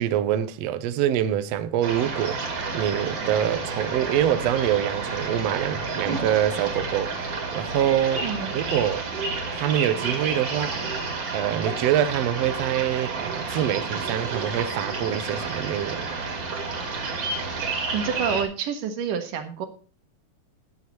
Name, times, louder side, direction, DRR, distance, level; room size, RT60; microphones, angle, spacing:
voice 1, 0.0-2.4 2.7-7.1 7.5-8.3 8.5-9.1 9.5-10.8 11.3-16.2, right 11 dB, 90° right, 1.4 m, -25 dB
sound 1, 1.8-18.4, right 4 dB, 50° right, 2.9 m, -30 dB
voice 2, 8.2-8.5 17.9-19.7, right 7 dB, 70° right, 3.0 m, -28 dB
13.0 x 11.0 x 3.1 m
omnidirectional pair, 4.0 m